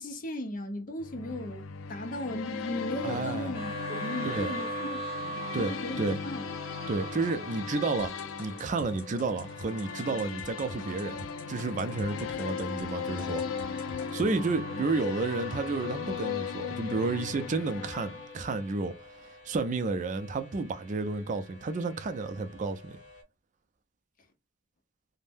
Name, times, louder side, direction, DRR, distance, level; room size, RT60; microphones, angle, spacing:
voice 1, 0.0-4.9 5.2-6.5 14.3-14.8, left 1 dB, 45° left, 0.6 m, -37 dB
sound 1, 1.0-18.7, left 6 dB, 90° left, 0.4 m, -38 dB
voice 2, 3.0-3.5 4.2-4.5 5.5-6.2 6.9-8.1 8.4-13.4 14.1-18.9 19.5-23.0, right 3 dB, 40° right, 0.4 m, -31 dB
sound 2, 3.5-23.2, right 1 dB, 5° right, 1.2 m, -44 dB
sound 3, 8.0-12.9 13.2-14.3, left 1 dB, 65° left, 1.0 m, -46 dB
2.6 x 2.1 x 3.4 m
head